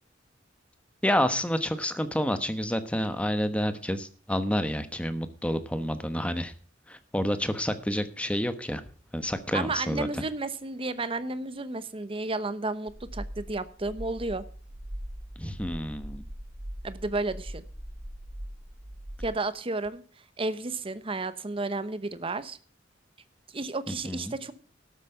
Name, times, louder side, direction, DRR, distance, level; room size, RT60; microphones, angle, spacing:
voice 1, 1.0-6.5 6.9-8.8 9.1-10.1 15.4-16.3 23.9-24.3, equal, 5° left, 10 dB, 1.0 m, -29 dB
voice 2, 9.5-14.5 16.8-17.6 19.2-20.0 20.4-22.6 23.5-24.5, right 3 dB, 30° right, 13 dB, 0.8 m, -32 dB
sound 1, 12.9-19.3, equal, 45° right, 1.7 m, -41 dB
12.5 x 8.2 x 5.8 m, 0.42 s
head